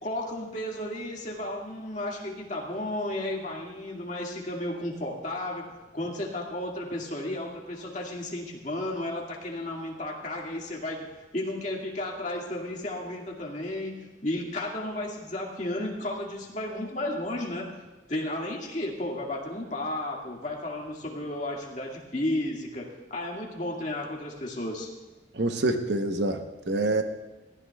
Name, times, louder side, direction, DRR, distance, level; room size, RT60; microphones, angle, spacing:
voice 1, 0.0-5.6 5.9-11.1 11.3-17.7 18.1-24.9, left 1 dB, 40° left, -2 dB, 2.0 m, -33 dB
voice 2, 25.3-27.0, right 2 dB, 80° right, 6 dB, 0.9 m, -26 dB
20.5 x 15.0 x 2.3 m, 1.1 s
head